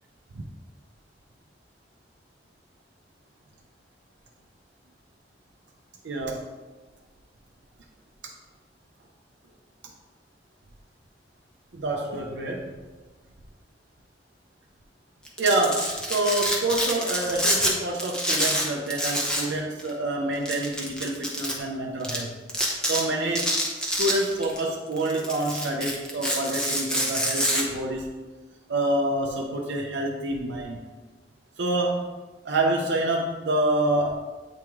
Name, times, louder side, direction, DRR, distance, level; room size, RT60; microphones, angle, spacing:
voice 1, 6.0-6.5 11.7-12.7 15.4-22.3 22.8-28.1 28.7-30.8 31.6-32.1 32.4-34.2, right 2 dB, 80° right, 0 dB, 0.6 m, -27 dB
Domestic sounds home sounds, 15.2-17.7 18.0-19.5 19.8-19.9 20.5-21.5 22.0-22.2 22.5-23.0 23.4-24.6 25.0-27.6, equal, 5° left, 0.8 m, -26 dB
8.7 x 3.0 x 3.6 m, 1.3 s
head